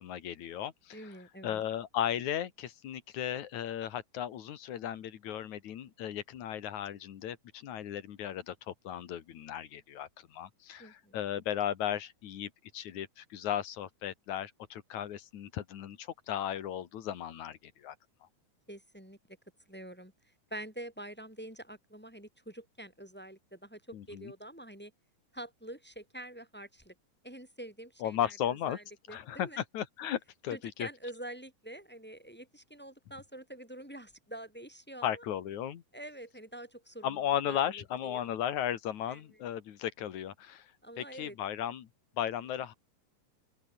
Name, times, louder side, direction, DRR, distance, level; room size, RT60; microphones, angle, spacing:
voice 1, 0.0-1.0 1.4-17.9 23.9-24.3 28.0-28.8 29.1-30.9 35.0-35.8 37.0-40.7 41.0-41.9 42.2-42.7, left 10 dB, 65° left, 3.0 m, -36 dB
voice 2, 0.9-1.6 10.8-11.2 18.7-19.2 19.7-20.1 20.5-24.9 25.3-26.9 27.2-29.6 30.5-35.2 35.9-37.2 37.5-38.3 39.1-39.4 40.8-41.4, right 1 dB, 5° left, 3.2 m, -46 dB
open air
omnidirectional pair, 3.6 m